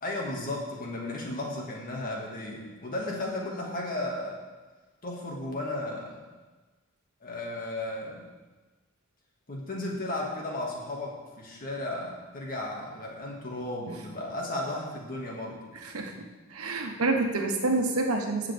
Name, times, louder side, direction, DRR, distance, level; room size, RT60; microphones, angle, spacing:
voice 1, 0.0-4.4 5.0-6.2 7.2-8.3 9.5-15.6, left 1 dB, 40° left, -2 dB, 2.0 m, -34 dB
voice 2, 15.7-18.5, right 2 dB, 80° right, 3 dB, 1.2 m, -28 dB
15.0 x 7.3 x 3.5 m, 1.3 s
head